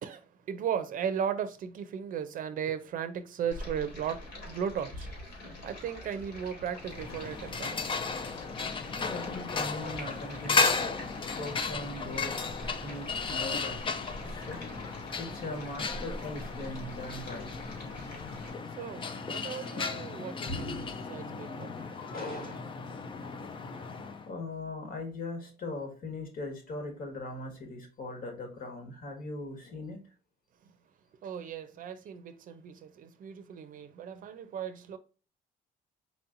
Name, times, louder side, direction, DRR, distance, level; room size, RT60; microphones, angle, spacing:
voice 1, 0.0-5.3 5.6-7.9 18.8-22.3 31.2-35.0, right 8 dB, 55° right, 0.6 m, -36 dB
Stream, 3.5-18.5, left 1 dB, 75° left, 2.1 m, -45 dB
sound 1, 6.8-24.3, left 4 dB, 30° left, 0.5 m, -35 dB
voice 2, 9.1-17.5 18.0-18.2 20.5-20.9 22.0-22.8 24.2-30.1, left 2 dB, 55° left, 1.6 m, -40 dB
4.3 x 2.8 x 2.6 m
cardioid pair, 110°, 17 cm